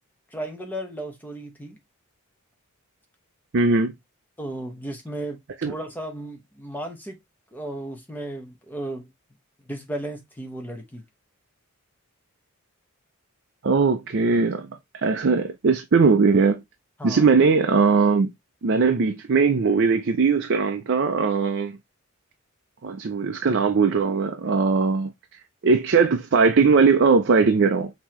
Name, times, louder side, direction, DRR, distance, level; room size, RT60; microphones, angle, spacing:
voice 1, 0.3-1.8 4.4-5.4 5.6-7.2 7.5-9.1 9.7-11.0 17.0-17.3, right 1 dB, 10° left, 1.0 m, -34 dB
voice 2, 3.5-3.9 5.6-5.7 13.6-14.7 15.0-16.6 17.0-18.3 18.6-21.8 22.8-25.1 25.6-27.9, right 4 dB, 50° right, 0.5 m, -19 dB
5.4 x 2.9 x 3.0 m
head